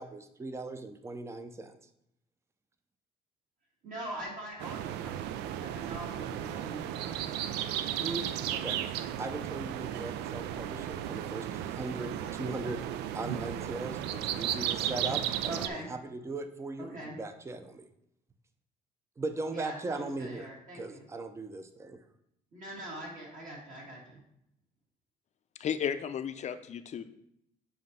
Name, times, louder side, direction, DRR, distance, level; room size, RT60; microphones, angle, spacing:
voice 1, 0.0-1.8 8.0-8.8 9.2-12.9 13.1-17.9 19.2-20.5 20.7-22.0, right 2 dB, 15° right, 9 dB, 0.6 m, -39 dB
voice 2, 3.8-7.4 15.5-15.9 16.8-17.2 19.5-21.0 22.5-24.2, right 1 dB, 50° right, -3 dB, 2.5 m, -43 dB
sound 1, 4.6-15.7, right 10 dB, 85° right, 0.4 m, -35 dB
voice 3, 25.6-27.0, left 8 dB, 45° left, 10 dB, 0.5 m, -33 dB
7.4 x 2.8 x 5.4 m, 0.76 s
cardioid pair, 110°, 17 cm